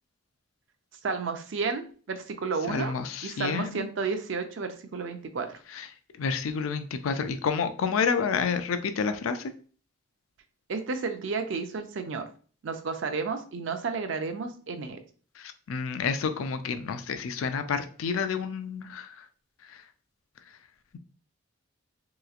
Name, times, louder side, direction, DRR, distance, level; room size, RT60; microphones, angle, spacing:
voice 1, 1.0-2.9 3.2-5.6 10.7-12.2 12.6-15.0, right 4 dB, 65° right, 7 dB, 0.4 m, -32 dB
voice 2, 2.7-3.9 5.7-5.9 6.2-9.5 15.4-19.1, left 5 dB, 85° left, 9 dB, 0.4 m, -29 dB
3.1 x 2.9 x 2.4 m, 0.41 s
head